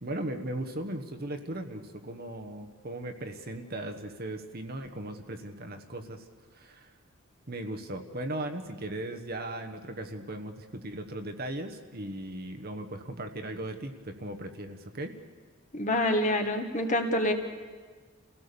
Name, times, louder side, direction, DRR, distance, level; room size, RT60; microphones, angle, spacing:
voice 1, 0.0-6.2 6.5-6.9 7.5-15.1, right 1 dB, 45° right, 5 dB, 1.3 m, -37 dB
voice 2, 15.7-17.3, left 1 dB, 35° left, 5 dB, 1.7 m, -26 dB
29.0 x 17.0 x 7.0 m, 1.5 s
head